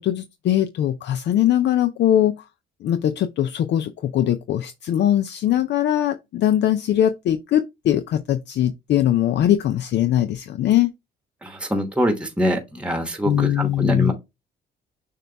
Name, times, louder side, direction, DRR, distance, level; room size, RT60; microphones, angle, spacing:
voice 1, 0.0-2.5 2.8-10.9 13.2-14.1, left 11 dB, 60° left, 0.4 m, -21 dB
voice 2, 11.4-14.1, equal, 5° right, 1.1 m, -24 dB
6.5 x 2.3 x 3.3 m
cardioid pair, 90°, 20 cm